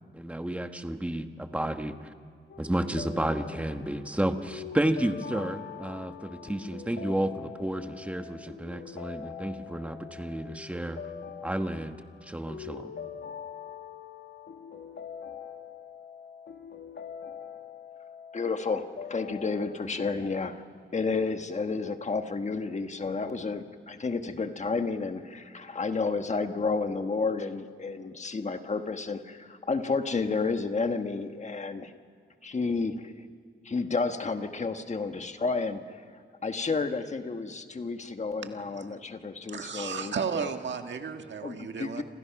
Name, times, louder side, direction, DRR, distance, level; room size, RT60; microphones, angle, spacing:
voice 1, 0.1-2.0 2.6-11.0 11.4-12.0 12.2-12.9, right 1 dB, 5° right, 7 dB, 1.3 m, -31 dB
sound 1, 2.5-19.9, left 7 dB, 70° left, 2.0 m, -43 dB
voice 2, 18.3-20.6 20.9-31.9 32.4-33.3 33.6-36.0 36.4-40.4 41.4-42.0, left 4 dB, 35° left, 7 dB, 1.3 m, -31 dB
voice 3, 38.4-39.0 39.5-42.0, right 6 dB, 70° right, 6 dB, 1.6 m, -34 dB
29.0 x 27.0 x 5.9 m, 2.2 s
wide cardioid pair, 145°, 20 cm